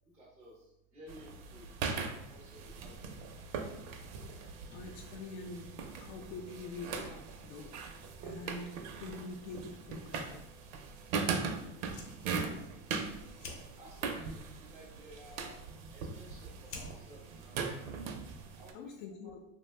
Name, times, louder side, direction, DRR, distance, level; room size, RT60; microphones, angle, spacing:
voice 1, 0.0-1.7 2.3-3.1 13.8-15.5 15.9-17.6 18.6-18.9 19.2-19.3, equal, 5° right, -5 dB, 0.3 m, -55 dB
sound 1, 1.1-18.7, right 5 dB, 65° right, 0.6 m, -40 dB
voice 2, 4.4-7.8 8.2-10.5 18.4-19.4, left 3 dB, 85° left, 3 dB, 0.5 m, -46 dB
Fire, 11.8-18.6, left 3 dB, 55° left, 0.8 m, -54 dB
2.5 x 2.2 x 3.2 m, 0.83 s
supercardioid pair, 135°, 44 cm